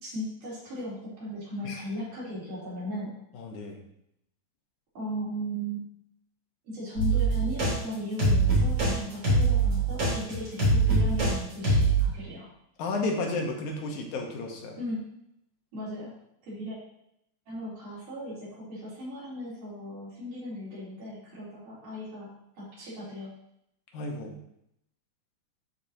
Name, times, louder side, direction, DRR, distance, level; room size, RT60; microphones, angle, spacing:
voice 1, 0.0-3.1 4.9-5.8 6.6-12.5 14.8-15.0 15.7-16.1 16.4-16.8 17.5-22.3 22.6-23.3, equal, 85° right, -8 dB, 4.7 m, -37 dB
voice 2, 3.3-3.8 12.8-14.8 23.9-24.3, left 2 dB, 75° left, 1 dB, 2.5 m, -32 dB
sound 1, 7.0-7.7 8.2-8.9 9.2-11.3 11.6-12.0, right 2 dB, 55° right, 4.1 m, -23 dB
12.0 x 4.4 x 2.8 m, 0.77 s
omnidirectional pair, 3.5 m